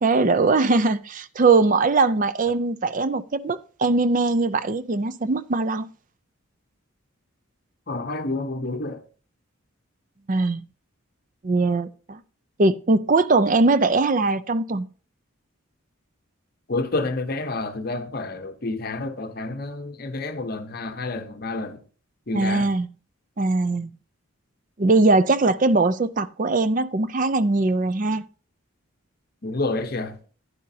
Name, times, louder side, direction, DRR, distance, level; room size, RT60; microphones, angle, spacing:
voice 1, 0.0-5.9 10.3-10.6 11.4-12.2 12.6-14.9 22.3-22.9 23.4-23.9 24.8-28.2, right 3 dB, 35° right, 0.4 m, -21 dB
voice 2, 7.9-9.0 16.7-21.8 22.3-22.8 29.4-30.2, left 2 dB, 45° left, 0.8 m, -29 dB
11.5 x 10.5 x 2.7 m
head